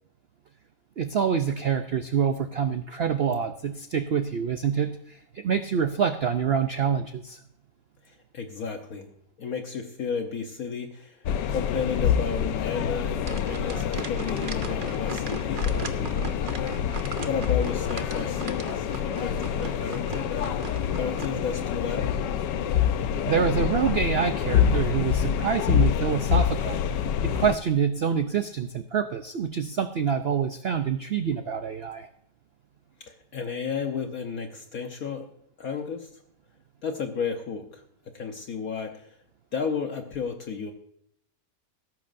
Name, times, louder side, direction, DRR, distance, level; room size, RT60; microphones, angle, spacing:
voice 1, 1.0-7.4 23.3-26.8 27.2-32.1, right 7 dB, 70° right, 9 dB, 0.5 m, -26 dB
voice 2, 8.0-9.1 9.4-16.4 17.2-22.1 33.0-35.3 35.6-36.1 36.8-37.8 38.1-39.2 39.5-40.7, left 6 dB, 60° left, 4 dB, 1.4 m, -33 dB
sound 1, 11.2-27.6, left 8 dB, 80° left, 1.4 m, -26 dB
sound 2, 13.2-21.3, right 4 dB, 40° right, 0.9 m, -39 dB
16.5 x 14.0 x 2.6 m, 0.73 s
omnidirectional pair, 1.8 m